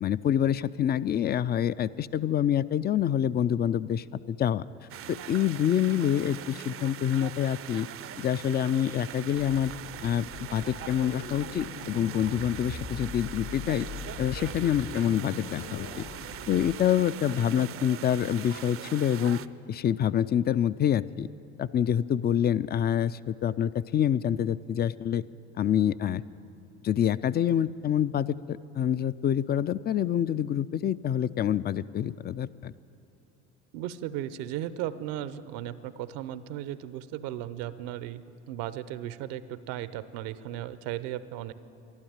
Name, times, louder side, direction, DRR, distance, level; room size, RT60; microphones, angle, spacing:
voice 1, 0.0-4.6 5.1-7.9 8.2-9.7 10.0-13.9 14.2-16.0 16.5-19.4 19.7-21.3 21.6-25.2 25.6-26.2 26.8-32.7, left 9 dB, 30° left, 18 dB, 0.4 m, -26 dB
sound 1, 4.9-19.5, right 11 dB, 40° right, 0.5 m, -42 dB
sound 2, 9.3-16.9, left 6 dB, 55° left, 1.2 m, -42 dB
voice 2, 33.7-41.5, right 12 dB, 70° right, 15 dB, 0.7 m, -36 dB
12.0 x 12.0 x 8.8 m, 2.9 s
hypercardioid pair, 70°, 35 cm